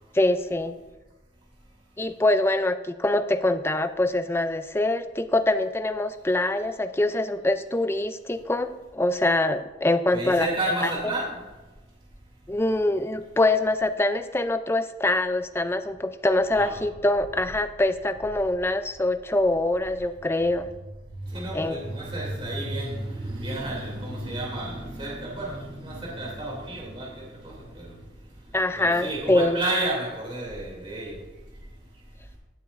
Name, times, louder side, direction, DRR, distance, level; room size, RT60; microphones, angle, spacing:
voice 1, 0.1-0.8 2.0-10.5 10.8-10.9 12.5-20.7 21.5-21.8 28.5-29.6, left 2 dB, 15° left, 10 dB, 0.4 m, -24 dB
voice 2, 10.1-11.4 16.5-16.7 21.3-28.0 28.8-31.1, right 1 dB, 30° right, -3 dB, 2.7 m, -31 dB
16.5 x 7.0 x 2.6 m, 1.1 s
head